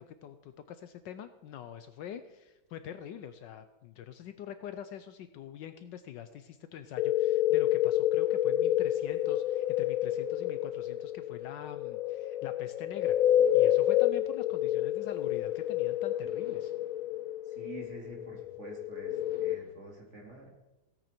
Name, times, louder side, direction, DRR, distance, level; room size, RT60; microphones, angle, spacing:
voice 1, 0.0-16.7, left 9 dB, 70° left, 11 dB, 1.2 m, -45 dB
sound 1, 7.0-19.6, left 12 dB, 90° left, 0.7 m, -29 dB
sound 2, 13.4-15.6 16.2-18.5 19.1-19.7, equal, 30° left, 4.8 m, -58 dB
voice 2, 17.5-20.5, right 2 dB, 35° right, 0 dB, 2.7 m, -47 dB
16.5 x 8.9 x 4.4 m, 1.0 s
omnidirectional pair, 2.2 m